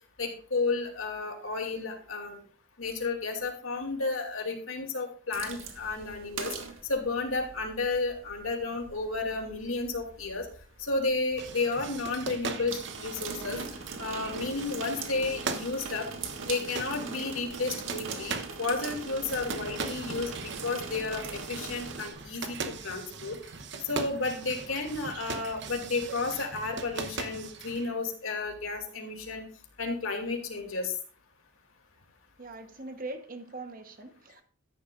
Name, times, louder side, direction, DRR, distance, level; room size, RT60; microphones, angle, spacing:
voice 1, 0.2-2.4 2.8-6.5 6.9-10.5 10.8-13.6 14.0-16.0 16.5-23.4 23.8-29.4 29.8-30.9, left 3 dB, 90° left, 2.7 m, -32 dB
sound 1, 5.3-22.1, right 4 dB, 80° right, 1.8 m, -41 dB
sound 2, 11.4-27.9, right 4 dB, 60° right, 0.9 m, -40 dB
voice 2, 32.4-34.4, right 2 dB, 40° right, 1.1 m, -41 dB
14.0 x 10.5 x 2.5 m
head